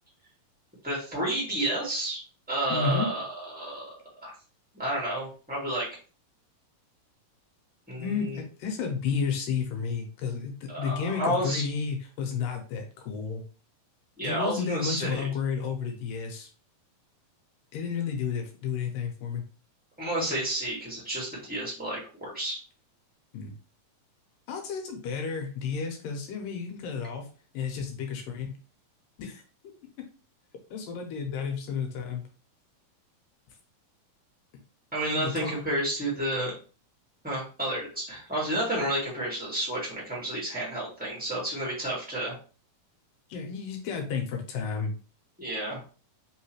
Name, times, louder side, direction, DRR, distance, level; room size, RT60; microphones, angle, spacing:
voice 1, 0.8-2.2 2.5-3.8 4.2-4.3 4.7-5.9 7.9-8.4 10.7-11.7 14.2-15.2 20.0-22.6 34.9-36.5 37.2-42.3 45.4-45.8, right 1 dB, 10° right, -5 dB, 0.4 m, -31 dB
voice 2, 2.7-3.1 8.0-13.4 14.2-16.5 17.7-19.4 23.3-23.5 24.5-27.3 27.5-28.6 29.2-30.1 30.7-32.2 35.1-35.6 43.3-44.9, left 6 dB, 80° left, 3 dB, 2.5 m, -32 dB
5.3 x 3.2 x 3.1 m, 0.37 s
omnidirectional pair, 4.0 m